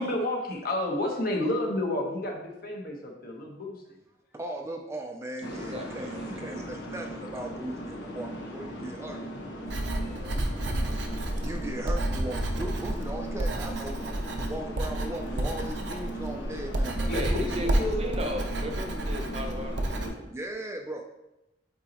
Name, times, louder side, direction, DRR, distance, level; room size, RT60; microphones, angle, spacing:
voice 1, 0.0-4.0 6.5-6.7 10.7-10.8 17.0-18.0, left 1 dB, 55° left, 1 dB, 1.2 m, -31 dB
voice 2, 4.3-9.2 11.4-14.0 14.3-17.1 20.3-21.0, right 1 dB, 15° right, 3 dB, 0.4 m, -38 dB
sound 1, 5.4-20.1, right 1 dB, 80° left, 1.1 m, -38 dB
voice 3, 5.4-6.6 9.9-10.4 17.1-20.3, equal, 35° right, 4 dB, 0.8 m, -37 dB
Writing, 9.6-20.1, right 1 dB, 75° right, 0.7 m, -30 dB
8.3 x 3.9 x 3.0 m, 0.94 s
head